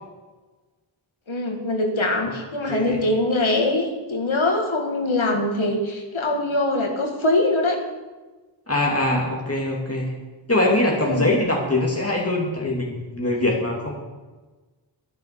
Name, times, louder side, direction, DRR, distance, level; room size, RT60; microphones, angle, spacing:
voice 1, 1.3-7.8 11.0-11.3, left 2 dB, 90° left, 2 dB, 1.9 m, -23 dB
voice 2, 2.7-3.0 8.7-10.1 10.5-13.9, left 1 dB, 30° left, -2 dB, 2.7 m, -22 dB
12.0 x 10.5 x 6.8 m, 1.2 s
wide cardioid pair, 45°, 46 cm